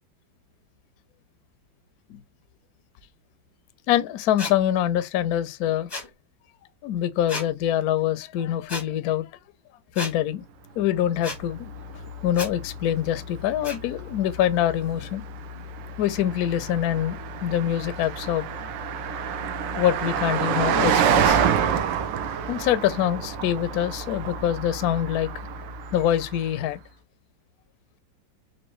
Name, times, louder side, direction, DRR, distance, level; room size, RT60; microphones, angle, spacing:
voice 1, 3.9-5.9 6.8-9.3 10.0-10.4 10.8-11.7 12.2-15.2 16.0-18.5 19.8-21.4 22.5-25.3 25.9-26.8, left 11 dB, 70° left, 0.9 m, -24 dB
sound 1, 4.4-4.5 5.9-6.1 7.3-7.5 8.7-8.8 9.9-10.1 11.2-11.4 12.3-12.5 13.6-13.8, left 2 dB, 25° left, 0.5 m, -32 dB
Car passing by, 10.9-26.6, right 7 dB, 75° right, 1.3 m, -29 dB
4.4 x 2.5 x 3.1 m
omnidirectional pair, 2.1 m